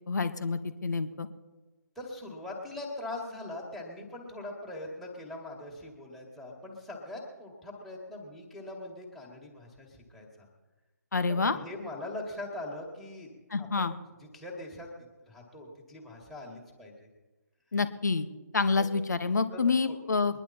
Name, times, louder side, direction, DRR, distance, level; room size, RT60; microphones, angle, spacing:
voice 1, 0.1-1.3 11.1-11.6 13.5-13.9 17.7-18.3 18.5-20.4, left 4 dB, 65° left, 10 dB, 1.3 m, -28 dB
voice 2, 2.0-10.5 11.3-13.3 13.6-13.9 14.2-14.9 15.3-17.1 18.8-18.9 19.5-19.6 19.9-20.0, left 1 dB, ahead, 0 dB, 2.0 m, -42 dB
22.0 x 10.5 x 4.3 m, 1.1 s
figure-of-eight pair, 150°, 10 cm